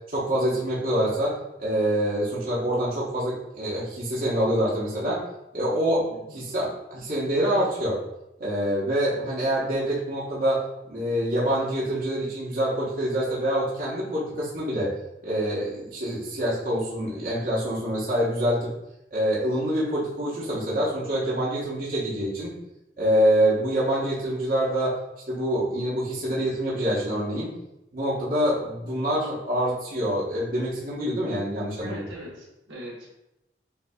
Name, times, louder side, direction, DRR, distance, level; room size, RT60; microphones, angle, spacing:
voice 1, 0.1-1.3 1.6-5.2 5.5-8.0 8.4-10.6 10.9-14.9 15.2-18.7 19.1-22.5 23.0-24.9 25.3-27.5 27.9-32.0, equal, 50° right, -8 dB, 1.0 m, -26 dB
voice 2, 31.8-33.1, right 1 dB, 80° right, -4 dB, 1.3 m, -40 dB
6.9 x 2.6 x 2.3 m, 0.89 s
head